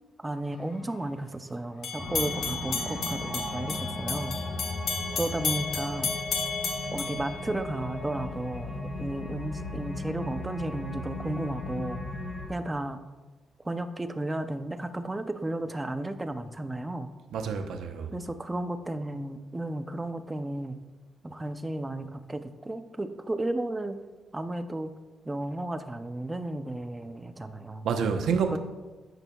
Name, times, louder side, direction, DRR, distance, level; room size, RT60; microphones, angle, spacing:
voice 1, 0.2-4.4 5.2-6.2 6.9-12.0 12.5-13.0 13.6-17.1 18.1-20.8 21.2-24.0 24.3-24.9 25.2-27.9 28.5-28.6, right 1 dB, 15° right, 0.5 m, -33 dB
sound 1, 1.8-8.1, left 5 dB, 70° left, 0.7 m, -33 dB
sound 2, 2.0-12.5, left 2 dB, 5° left, 1.5 m, -36 dB
voice 2, 17.3-18.1 27.8-28.6, right 6 dB, 90° right, 0.8 m, -28 dB
14.0 x 6.2 x 2.3 m
wide cardioid pair, 160°, 0 cm